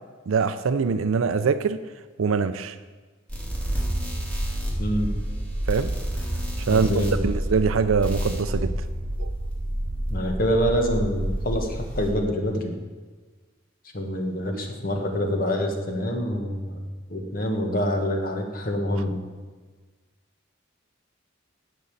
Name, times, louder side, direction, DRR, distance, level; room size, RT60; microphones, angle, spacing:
voice 1, 0.3-1.8 2.2-2.8 5.7-5.9 6.6-8.8 9.2-9.3 14.5-14.7, right 5 dB, 90° right, 10 dB, 0.5 m, -23 dB
sound 1, 3.3-12.1, right 1 dB, 5° left, 2.5 m, -29 dB
voice 2, 4.8-5.2 6.7-7.2 10.1-12.7 13.9-19.2, equal, 45° left, 3 dB, 1.5 m, -26 dB
11.5 x 5.3 x 8.5 m, 1.4 s
head